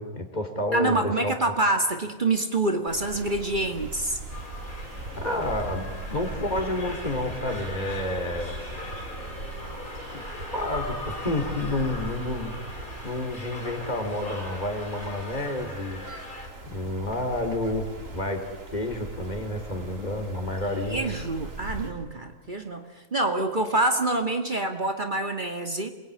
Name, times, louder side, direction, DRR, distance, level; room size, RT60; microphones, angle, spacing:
voice 1, 0.0-1.4 5.2-8.5 10.1-10.2 10.5-12.6 13.0-16.0 16.6-21.1, left 1 dB, 30° left, 6 dB, 3.5 m, -30 dB
voice 2, 0.7-4.2 20.8-25.9, right 2 dB, 35° right, 5 dB, 1.9 m, -26 dB
sound 1, 2.9-21.9, right 2 dB, 65° right, 3.4 m, -40 dB
sound 2, 4.3-16.5, left 2 dB, 75° left, 5.2 m, -40 dB
27.5 x 21.5 x 9.7 m, 1.2 s
omnidirectional pair, 1.5 m